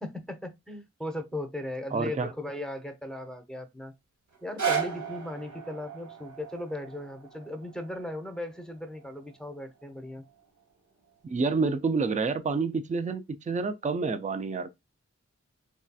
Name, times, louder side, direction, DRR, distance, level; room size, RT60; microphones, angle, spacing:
voice 1, 0.0-3.9 4.4-10.2, left 1 dB, ahead, 0.7 m, -37 dB
voice 2, 1.9-2.3 11.2-14.7, right 4 dB, 25° right, 0.3 m, -28 dB
sound 1, 4.3-10.4 11.1-11.2, right 7 dB, 85° right, 0.7 m, -36 dB
3.2 x 2.7 x 2.3 m
wide cardioid pair, 40°, 29 cm